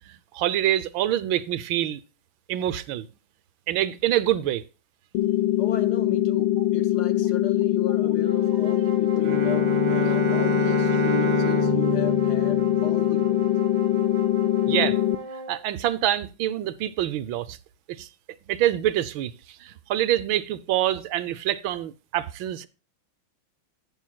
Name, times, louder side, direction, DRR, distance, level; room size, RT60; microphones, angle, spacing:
voice 1, 0.1-2.0 2.5-3.1 3.7-4.6 14.6-15.0 15.5-17.6 17.9-18.1 18.5-22.7, right 12 dB, 80° right, 1.4 m, -26 dB
sound 1, 5.1-15.2, left 14 dB, 90° left, 1.5 m, -23 dB
voice 2, 5.6-13.5, left 7 dB, 60° left, 1.3 m, -35 dB
sound 2, 8.2-15.6, right 2 dB, 35° right, 2.5 m, -37 dB
Bowed string instrument, 9.1-13.5, right 8 dB, 65° right, 1.7 m, -29 dB
12.0 x 9.2 x 2.3 m
omnidirectional pair, 2.2 m